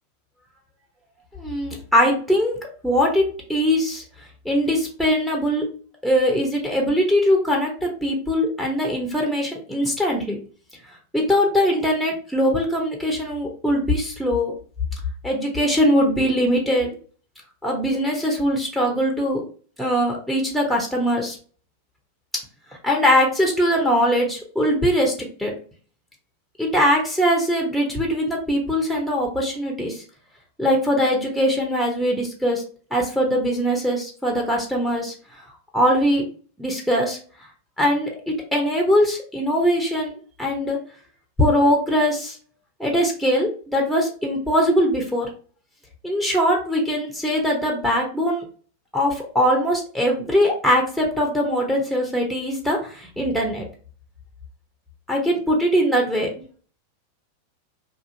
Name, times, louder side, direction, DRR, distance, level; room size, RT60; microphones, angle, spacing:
voice 1, 1.3-3.2 3.5-4.0 4.4-5.7 6.0-10.4 11.1-14.5 15.2-16.9 17.6-19.4 19.8-21.4 22.8-25.5 26.6-30.0 30.6-32.6 32.9-35.1 35.7-36.2 36.6-37.2 37.8-40.8 41.4-42.4 42.8-45.3 46.0-48.4 48.9-53.6 55.1-56.3, equal, ahead, 0 dB, 0.8 m, -21 dB
2.5 x 2.4 x 2.7 m, 0.41 s
figure-of-eight pair, 90°, 0 cm